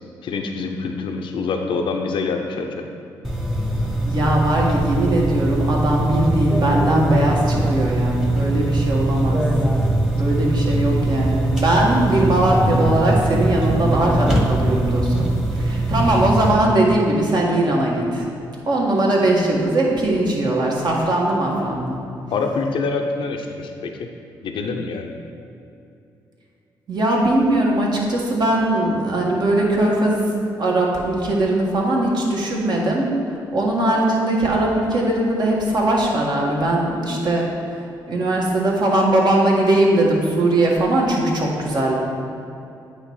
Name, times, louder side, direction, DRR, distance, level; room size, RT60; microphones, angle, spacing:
voice 1, 0.2-2.8 22.3-24.1 24.4-25.1, left 4 dB, 70° left, 3 dB, 0.6 m, -25 dB
sound 1, 3.2-16.5, right 1 dB, 5° right, 1.2 m, -21 dB
voice 2, 4.0-9.4 10.1-18.2 18.7-22.0 26.9-30.3 30.6-33.1 33.5-37.5 38.1-41.9, right 1 dB, 50° right, -3 dB, 1.7 m, -20 dB
8.5 x 3.3 x 5.5 m, 2.7 s
supercardioid pair, 55°, 9 cm